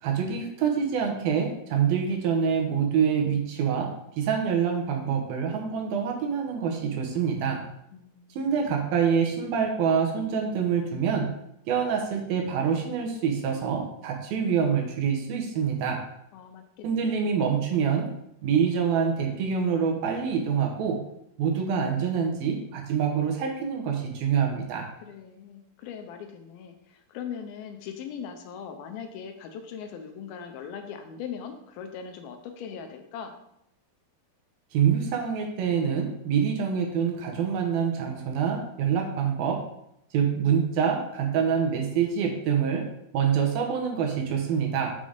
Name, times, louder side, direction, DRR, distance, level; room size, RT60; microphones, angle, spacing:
voice 1, 0.0-7.6 8.4-11.3 11.7-16.0 16.8-18.1 18.4-21.0 21.4-24.9 34.7-39.6 40.1-42.9 43.1-44.9, right 7 dB, 75° right, 2 dB, 2.9 m, -26 dB
voice 2, 7.9-9.1 14.6-14.7 16.3-17.3 25.0-33.4, left 7 dB, 75° left, 6 dB, 2.5 m, -40 dB
7.4 x 5.5 x 5.1 m, 0.79 s
omnidirectional pair, 4.5 m